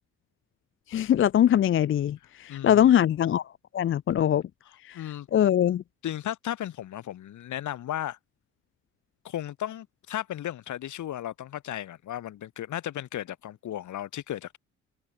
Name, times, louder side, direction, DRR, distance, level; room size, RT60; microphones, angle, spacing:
voice 1, 0.9-3.4 3.7-4.4 4.8-5.0 5.3-5.8, left 10 dB, 45° left, 0.5 m, -22 dB
voice 2, 2.5-2.9 4.9-5.3 6.0-8.2 9.2-14.6, left 12 dB, 75° left, 5.8 m, -35 dB
cardioid pair, 90°, 30 cm